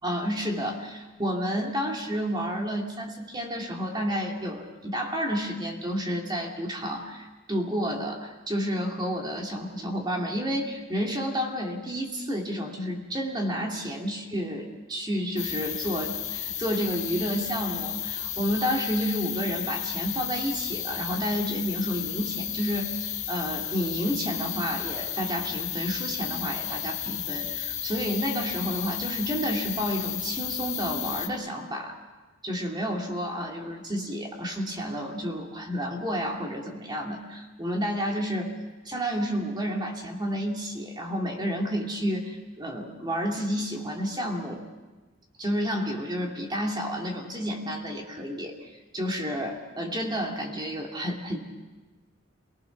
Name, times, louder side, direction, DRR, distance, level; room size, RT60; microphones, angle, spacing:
voice 1, 0.0-32.0 32.4-38.5 38.8-44.6 45.4-48.5 48.9-51.4, equal, 20° right, 1 dB, 2.4 m, -30 dB
sound 1, 15.4-31.3, left 10 dB, 35° left, 1.4 m, -33 dB
28.5 x 18.5 x 6.0 m, 1.2 s
head